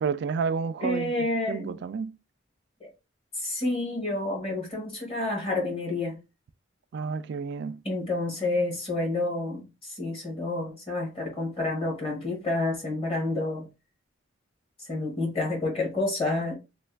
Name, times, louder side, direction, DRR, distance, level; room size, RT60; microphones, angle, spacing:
voice 1, 0.0-1.1 1.5-2.2 6.9-7.8, right 5 dB, 65° right, 0.3 m, -30 dB
voice 2, 0.8-1.8 2.8-2.9 3.4-6.2 7.8-13.7 14.9-16.5, left 2 dB, 30° left, 1.5 m, -29 dB
3.2 x 2.3 x 3.3 m
head